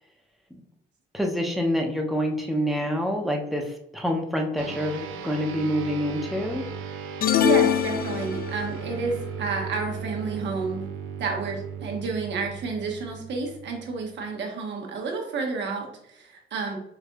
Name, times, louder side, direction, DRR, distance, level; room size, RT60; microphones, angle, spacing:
voice 1, 1.1-6.6, equal, ahead, 1 dB, 0.7 m, -27 dB
sound 1, 4.6-14.3, right 6 dB, 85° right, 0.4 m, -37 dB
sound 2, 7.2-8.8, left 9 dB, 50° left, 0.4 m, -23 dB
voice 2, 7.4-10.9 11.2-16.8, right 4 dB, 65° right, 1 dB, 1.0 m, -30 dB
4.9 x 2.5 x 2.2 m, 0.79 s
cardioid pair, 90°, 20 cm